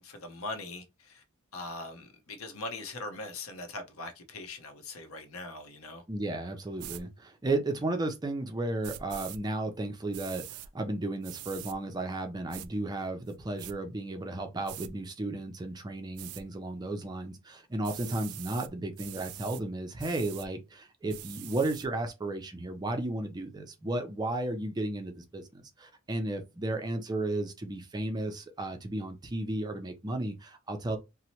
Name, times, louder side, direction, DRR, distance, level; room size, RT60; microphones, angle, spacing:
voice 1, 0.0-1.2 1.5-6.0, left 2 dB, 75° left, 0.7 m, -41 dB
voice 2, 6.1-31.0, right 2 dB, 20° right, 0.4 m, -34 dB
sound 1, 6.8-7.0 8.8-9.4 10.1-10.7 11.2-11.8 12.5-12.7 13.3-13.7 14.6-14.9 16.2-16.4 17.8-18.7 19.0-19.6 20.0-20.5 21.1-21.9, right 12 dB, 90° right, 0.3 m, -43 dB
2.8 x 2.0 x 2.9 m
head